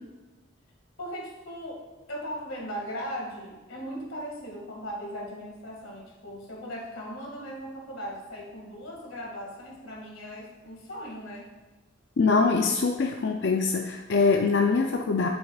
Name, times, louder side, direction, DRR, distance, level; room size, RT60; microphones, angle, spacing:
voice 1, 1.0-11.5, equal, 90° left, -1 dB, 2.0 m, -38 dB
voice 2, 12.2-15.3, left 4 dB, 60° left, 2 dB, 0.4 m, -23 dB
9.5 x 7.0 x 2.4 m, 1.2 s
head